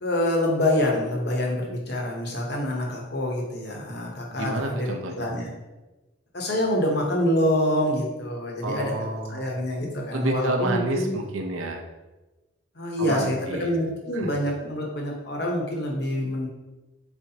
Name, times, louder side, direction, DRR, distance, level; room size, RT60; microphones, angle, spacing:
voice 1, 0.0-5.5 6.3-8.9 9.3-11.1 12.7-16.5, left 1 dB, 50° left, -1 dB, 1.0 m, -26 dB
voice 2, 4.3-5.3 8.6-9.5 10.1-11.8 13.0-13.7 14.1-14.3, right 2 dB, 80° right, 2 dB, 0.7 m, -29 dB
4.4 x 4.1 x 2.8 m, 1.1 s
head